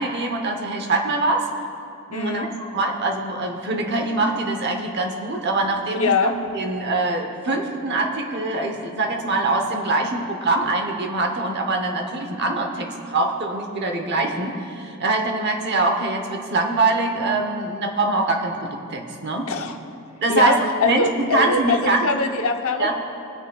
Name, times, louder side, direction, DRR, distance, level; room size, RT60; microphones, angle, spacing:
voice 1, 0.0-1.5 2.1-6.1 6.5-19.5 20.2-22.1 22.8-22.9, right 2 dB, 50° right, 3 dB, 1.0 m, -23 dB
voice 2, 2.1-2.5 6.0-6.4 19.5-19.7 20.3-22.9, left 4 dB, 70° left, 5 dB, 0.8 m, -23 dB
22.5 x 9.9 x 2.3 m, 2.8 s
head